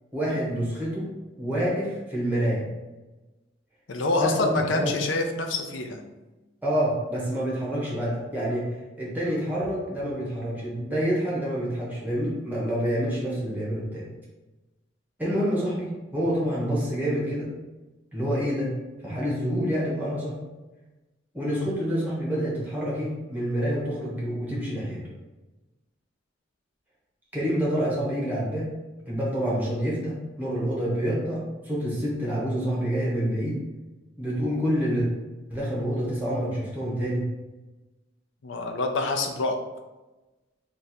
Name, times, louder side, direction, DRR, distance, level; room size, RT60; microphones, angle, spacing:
voice 1, 0.1-1.1 1.4-2.6 4.1-4.9 6.6-8.7 9.0-14.1 15.2-17.5 18.1-18.7 19.0-20.4 21.3-25.0 27.3-28.7 29.1-33.6 34.2-35.1 35.5-37.3, equal, 10° right, -6 dB, 1.2 m, -27 dB
voice 2, 3.9-6.0 38.4-39.6, left 2 dB, 85° left, 4 dB, 0.6 m, -26 dB
3.3 x 2.6 x 4.2 m, 1.1 s
head